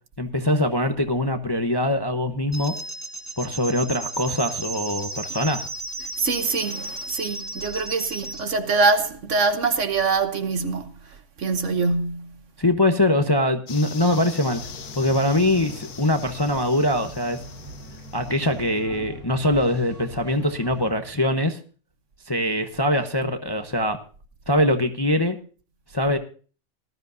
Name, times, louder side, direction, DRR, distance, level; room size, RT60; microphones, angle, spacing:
voice 1, 0.2-2.7 3.4-5.7 12.6-14.6 14.9-17.4 18.1-21.6 22.3-24.0 24.5-25.4 25.9-26.2, left 1 dB, 20° left, 0.7 m, -23 dB
sound 1, 2.5-8.4, right 2 dB, 10° right, 1.4 m, -34 dB
voice 2, 6.0-12.4, right 4 dB, 55° right, 1.3 m, -24 dB
sound 2, 13.7-18.7, left 8 dB, 90° left, 1.5 m, -41 dB
sound 3, 14.5-20.9, right 2 dB, 75° right, 2.2 m, -42 dB
19.0 x 13.0 x 2.7 m
omnidirectional pair, 1.6 m